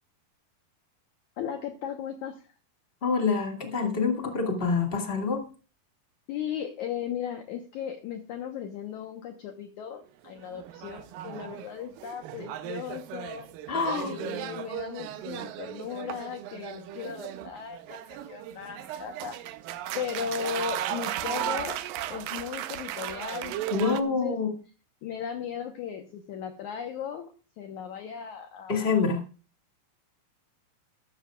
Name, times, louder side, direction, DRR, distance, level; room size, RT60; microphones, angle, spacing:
voice 1, 1.4-2.5 6.3-13.5 14.0-19.4 19.9-21.8 22.1-23.6 23.8-24.4 25.0-28.9, left 8 dB, 75° left, 5 dB, 1.8 m, -36 dB
voice 2, 3.0-5.5 13.7-14.2 23.7-24.5 28.7-29.2, left 4 dB, 40° left, 3 dB, 0.8 m, -26 dB
sound 1, 10.2-24.0, right 12 dB, 80° right, 2.1 m, -36 dB
14.0 x 13.0 x 2.4 m, 0.35 s
omnidirectional pair, 4.8 m